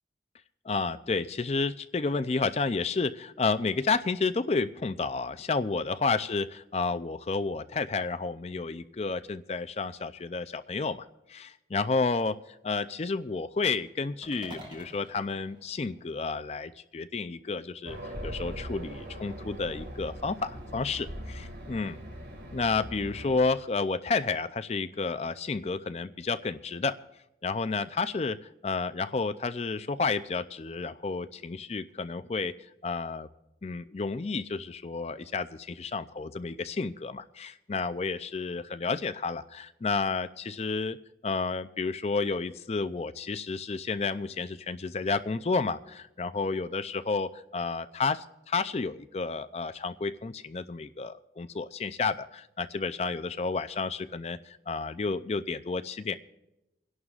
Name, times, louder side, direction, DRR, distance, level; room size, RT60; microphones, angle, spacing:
voice 1, 0.6-18.0 18.2-22.0 22.5-27.0 27.4-32.5 32.8-33.3 33.6-41.0 41.2-56.2, left 4 dB, 35° left, 11 dB, 0.4 m, -31 dB
sound 1, 14.2-16.5, equal, 30° right, 2.9 m, -49 dB
Race car auto racing, 17.8-23.4, equal, 70° right, 2.0 m, -41 dB
29.0 x 11.0 x 2.4 m, 0.91 s
head